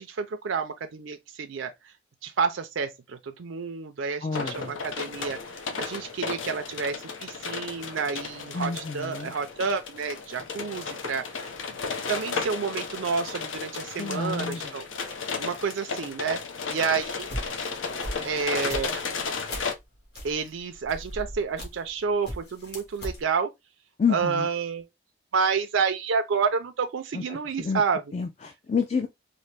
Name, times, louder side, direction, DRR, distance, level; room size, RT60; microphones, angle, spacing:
voice 1, 0.0-1.9 2.2-11.8 12.1-16.4 16.7-17.3 18.2-19.0 20.2-23.5 24.1-24.9 25.3-28.0, right 5 dB, 85° right, 0.5 m, -29 dB
voice 2, 4.2-4.8 8.5-9.3 14.0-14.7 24.0-24.5 27.1-27.8 28.1-29.1, left 5 dB, 35° left, 0.3 m, -29 dB
sound 1, 4.3-19.7, left 5 dB, 90° left, 0.7 m, -34 dB
sound 2, 17.2-19.8 20.1-22.0 22.2-23.2, equal, 55° left, 1.5 m, -37 dB
4.1 x 2.1 x 3.2 m
head